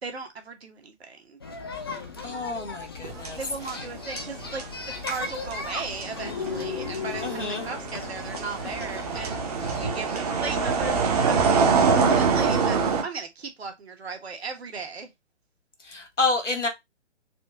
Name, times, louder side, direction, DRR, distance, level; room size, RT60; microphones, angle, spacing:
voice 1, 0.0-1.4 3.4-4.7 5.0-9.4 9.8-15.1, right 4 dB, 60° right, 1.3 m, -37 dB
sound 1, 1.4-11.4, left 4 dB, 20° left, 0.4 m, -37 dB
voice 2, 2.2-3.4 7.2-7.6 15.8-16.7, left 3 dB, 80° left, 1.4 m, -28 dB
sound 2, 3.0-13.0, right 5 dB, 35° right, 0.9 m, -25 dB
4.3 x 2.8 x 3.5 m
figure-of-eight pair, 130°, 36 cm